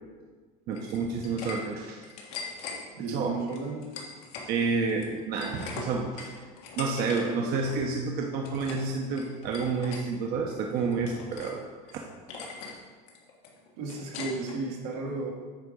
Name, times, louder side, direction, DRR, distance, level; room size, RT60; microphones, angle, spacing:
sound 1, 0.7-1.6 1.9-2.8 3.5-4.5 4.8-7.2 7.5-7.8 8.2-8.9 9.2-10.0 10.5-11.6 11.9-12.0 12.3-12.8 13.1-14.6, left 5 dB, 80° left, 1.7 m, -41 dB
voice 1, 0.7-2.1 3.1-3.3 4.5-6.4 6.7-11.6 11.9-12.1, right 4 dB, 55° right, 0 dB, 0.9 m, -29 dB
voice 2, 2.9-3.9 13.8-15.3, right 3 dB, 85° right, -1 dB, 1.8 m, -33 dB
9.3 x 3.8 x 5.2 m, 1.5 s
supercardioid pair, 115°, 19 cm